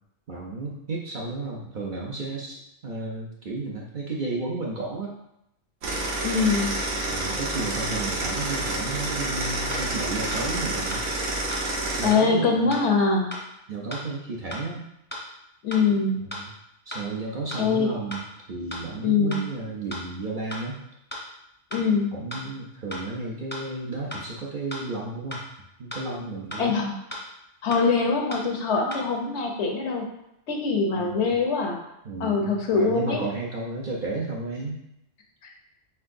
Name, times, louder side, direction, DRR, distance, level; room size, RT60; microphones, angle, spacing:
voice 1, 0.3-5.1 7.1-11.0 12.0-12.7 13.7-14.9 16.2-16.5 16.9-20.8 22.1-25.4 25.8-26.8 30.9-31.3 32.0-34.8, right 3 dB, 50° right, -3 dB, 0.7 m, -33 dB
sound 1, 5.8-12.1, right 2 dB, 80° right, 1.1 m, -28 dB
voice 2, 6.2-6.7 12.0-13.3 15.6-16.2 17.6-17.9 19.0-19.4 21.7-22.1 26.6-27.0 27.6-30.1 30.5-31.8 32.2-33.2, left 4 dB, 70° left, 2 dB, 0.9 m, -23 dB
sound 2, 9.7-9.8 10.3-10.4 10.9-11.0 11.5-11.6 12.1-12.2 12.7-12.8 13.3-13.4 13.9-14.0 14.5-14.6 15.1-15.2 15.7-15.8 16.3-16.4 16.9-17.0 17.5-17.6 18.1-18.2 18.7-18.8 19.3-19.4 19.9-20.0 20.5-20.6 21.1-21.2 21.7-21.8 22.3-22.4 22.9-23.0 23.5-23.6 24.1-24.2 24.7-24.8 25.3-25.4 25.9-26.0 26.5-26.6 27.1-27.2 27.7-27.8 28.3-28.4 28.9-29.0, left 1 dB, 10° left, 0.6 m, -35 dB
4.5 x 3.9 x 2.5 m, 0.82 s
omnidirectional pair, 1.3 m